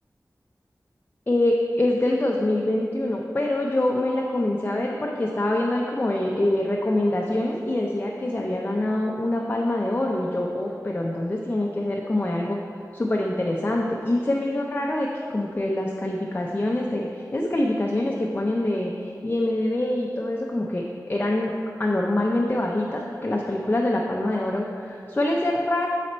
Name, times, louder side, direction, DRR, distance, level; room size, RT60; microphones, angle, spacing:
voice 1, 1.3-12.6 12.9-20.8 21.1-21.5 21.8-25.9, left 1 dB, 25° left, -1 dB, 0.5 m, -25 dB
7.8 x 4.1 x 4.2 m, 2.4 s
wide cardioid pair, 80°, 7 cm